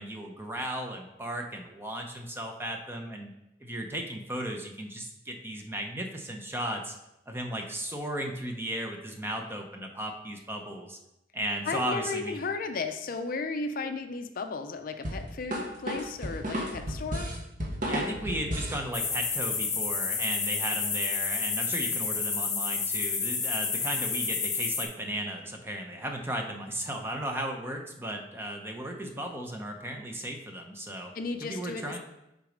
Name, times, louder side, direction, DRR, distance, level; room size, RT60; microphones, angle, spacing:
voice 1, 0.0-3.3 3.6-6.9 7.3-11.0 11.3-12.4 17.9-31.1 31.4-32.0, right 1 dB, 15° right, 2 dB, 0.7 m, -35 dB
voice 2, 11.7-17.3 31.1-32.0, left 4 dB, 50° left, 7 dB, 0.5 m, -34 dB
sound 1, 15.0-18.8, equal, 45° right, 1.3 m, -32 dB
sound 2, 18.9-24.9, left 5 dB, 20° left, 0.8 m, -30 dB
6.3 x 4.0 x 5.0 m, 0.87 s
head